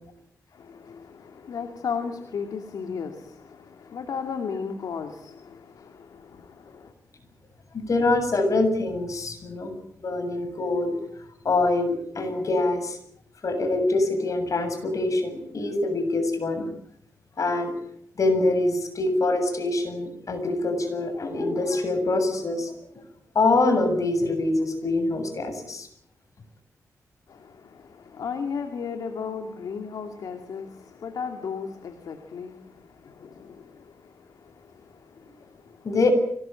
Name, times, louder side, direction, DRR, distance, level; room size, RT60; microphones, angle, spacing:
voice 1, 0.5-6.9 27.3-35.9, left 6 dB, 85° left, 2.6 m, -35 dB
voice 2, 7.9-9.7 10.0-11.0 11.4-13.0 13.4-16.7 17.4-17.7 18.2-22.8 23.3-25.9 35.8-36.1, left 2 dB, 60° left, 7.6 m, -24 dB
25.0 x 20.0 x 9.1 m
cardioid pair, 65°, 6 cm